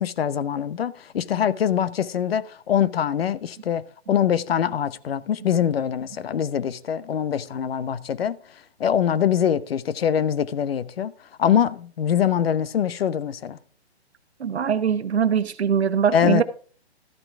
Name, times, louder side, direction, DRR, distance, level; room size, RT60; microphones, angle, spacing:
voice 1, 0.0-3.8 4.1-8.4 8.8-11.1 11.4-13.6 16.1-16.4, left 9 dB, 65° left, 0.8 m, -23 dB
voice 2, 14.4-16.4, right 7 dB, 75° right, 1.1 m, -22 dB
13.0 x 8.9 x 3.5 m
hypercardioid pair, 140°, 33 cm